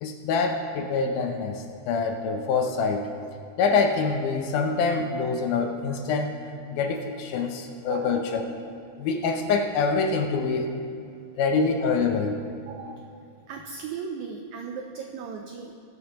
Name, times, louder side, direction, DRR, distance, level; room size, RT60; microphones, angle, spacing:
voice 1, 0.0-3.1 3.6-6.3 6.7-8.5 9.0-10.7 11.4-12.4, left 4 dB, 80° left, 5 dB, 2.0 m, -25 dB
voice 2, 7.9-8.3 12.7-15.8, right 6 dB, 90° right, 3 dB, 1.6 m, -37 dB
21.0 x 7.9 x 2.9 m, 2.4 s
omnidirectional pair, 4.1 m